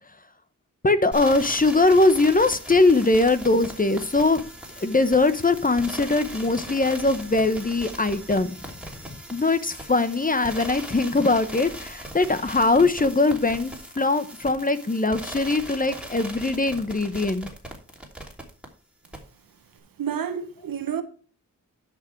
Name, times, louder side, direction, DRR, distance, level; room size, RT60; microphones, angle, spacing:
voice 1, 0.8-4.4 4.8-8.6 9.3-17.5, left 3 dB, 25° left, 1.0 m, -21 dB
sound 1, 1.1-18.7 19.0-19.2, right 1 dB, 5° right, 2.9 m, -39 dB
voice 2, 20.0-21.0, right 8 dB, 80° right, 1.3 m, -29 dB
10.5 x 6.2 x 4.6 m
cardioid pair, 80°, 33 cm